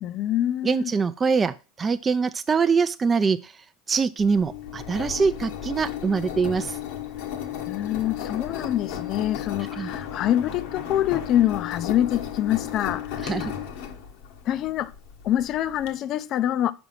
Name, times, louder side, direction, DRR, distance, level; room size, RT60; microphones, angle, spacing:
voice 1, 0.0-0.9 7.6-13.5 14.4-14.9 15.2-16.7, left 12 dB, 45° left, 0.5 m, -25 dB
voice 2, 0.6-6.8 9.8-9.9 13.2-13.5, right 5 dB, 20° right, 0.3 m, -24 dB
Engine, 4.2-15.9, left 9 dB, 70° left, 1.3 m, -34 dB
6.1 x 4.9 x 5.6 m
supercardioid pair, 125°, 0 cm